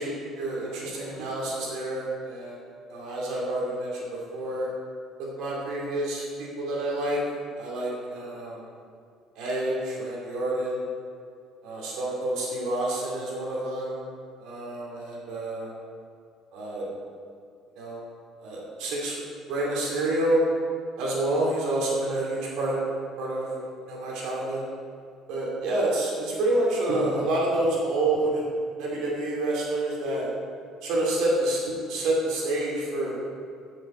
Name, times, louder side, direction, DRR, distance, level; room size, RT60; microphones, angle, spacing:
voice 1, 0.0-2.6 2.9-4.7 5.2-7.2 7.5-8.7 9.3-10.9 11.6-14.0 14.4-15.7 16.5-16.9 17.7-18.0 18.4-19.2 19.5-20.4 21.0-22.9 23.2-24.7 25.3-28.5 28.8-30.3 30.8-31.6 31.9-33.2, right 1 dB, 75° right, -4 dB, 2.6 m, -28 dB
13.0 x 6.4 x 4.3 m, 2.3 s
cardioid pair, 155°, 0 cm